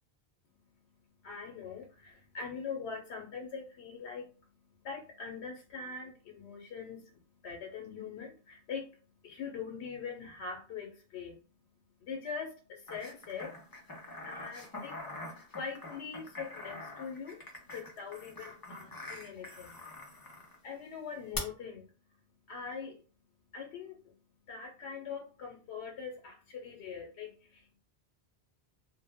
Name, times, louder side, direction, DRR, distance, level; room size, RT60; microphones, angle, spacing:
voice 1, 0.5-11.4 11.6-15.0 15.5-17.4 17.7-19.7 20.6-22.2 22.5-23.0 23.5-24.1 24.5-27.7, left 5 dB, 85° left, 1 dB, 0.9 m, -43 dB
sound 1, 12.9-20.6 21.3-21.4, left 2 dB, 30° left, 0.4 m, -45 dB
2.1 x 2.1 x 3.4 m, 0.36 s
omnidirectional pair, 1.1 m